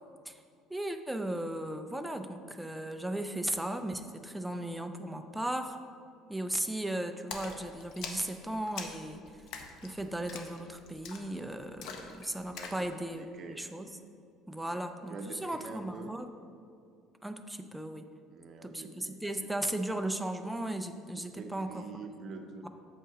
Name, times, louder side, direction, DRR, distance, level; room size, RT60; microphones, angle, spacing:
voice 1, 0.7-5.8 6.3-9.2 9.8-13.9 14.5-16.3 17.2-18.1 18.6-21.8, right 1 dB, 5° right, 6 dB, 0.3 m, -36 dB
Splash splatter, 7.3-12.9, left 5 dB, 50° left, 0.7 m, -45 dB
voice 2, 12.5-13.6 14.6-14.8 15.1-16.1 18.3-19.2 21.4-22.7, right 4 dB, 35° right, 4 dB, 0.7 m, -46 dB
7.4 x 5.5 x 4.8 m, 2.3 s
cardioid pair, 180°, 0 cm